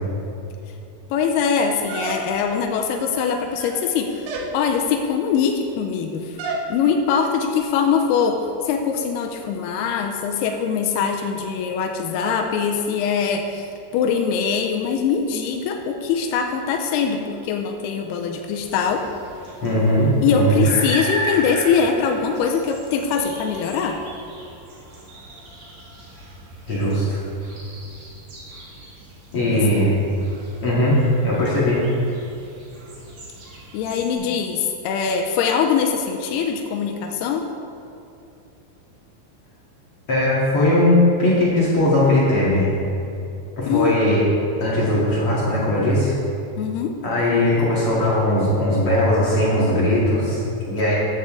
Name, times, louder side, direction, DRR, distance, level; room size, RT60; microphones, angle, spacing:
voice 1, 1.1-4.3 4.5-6.4 6.7-19.1 20.2-24.0 29.5-29.6 33.7-37.5 43.7-44.0 46.6-47.0, left 6 dB, 85° left, 4 dB, 2.3 m, -22 dB
sound 1, 1.9-2.6 3.4-3.9 4.2-4.6 6.4-6.7, right 2 dB, 85° right, 3.5 m, -29 dB
sound 2, 18.5-34.1, right 1 dB, 45° right, 2.5 m, -36 dB
voice 2, 19.6-20.6 26.7-27.2 29.3-30.0 30.6-31.0 31.2-31.9 34.1-34.2 40.1-42.8 43.6-44.2 44.6-46.1 47.0-50.9, left 1 dB, 50° left, -7 dB, 1.8 m, -19 dB
14.0 x 9.5 x 3.7 m, 2.7 s
omnidirectional pair, 5.3 m